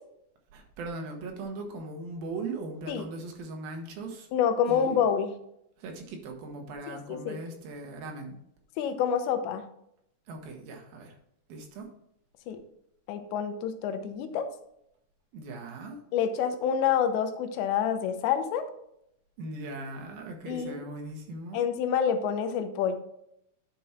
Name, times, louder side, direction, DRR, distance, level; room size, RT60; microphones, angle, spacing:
voice 1, 0.5-4.3 4.6-5.0 5.8-8.4 10.3-11.2 11.5-11.9 15.3-16.0 19.4-21.6, right 2 dB, 65° right, 3 dB, 2.8 m, -39 dB
voice 2, 4.3-5.3 6.9-7.4 8.8-9.7 12.5-12.6 13.1-14.5 16.1-18.7 20.5-20.8 21.5-23.0, left 8 dB, 90° left, 8 dB, 3.1 m, -27 dB
10.0 x 5.3 x 4.4 m, 0.76 s
omnidirectional pair, 4.9 m